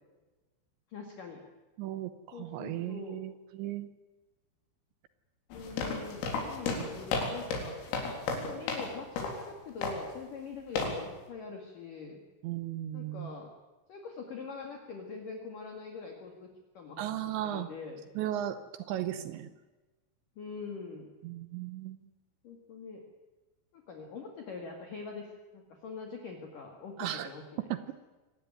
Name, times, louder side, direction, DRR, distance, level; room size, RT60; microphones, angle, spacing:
voice 1, 0.9-1.4 2.3-3.2 5.5-7.8 8.3-12.2 12.9-13.5 13.9-16.5 16.7-18.1 20.4-21.1 22.4-23.0 23.7-25.3 25.5-27.6, left 4 dB, 50° left, 2 dB, 3.1 m, -44 dB
voice 2, 1.8-3.9 6.8-6.9 12.4-13.3 17.0-17.7 18.2-19.5 21.2-22.0 27.0-27.3 27.7-27.9, right 12 dB, 75° right, 12 dB, 2.8 m, -36 dB
sound 1, 5.5-8.9 9.2-9.4 9.8-10.1 10.8-11.0, left 3 dB, 85° left, 6.7 m, -33 dB
25.5 x 19.0 x 9.4 m, 1.2 s
omnidirectional pair, 6.0 m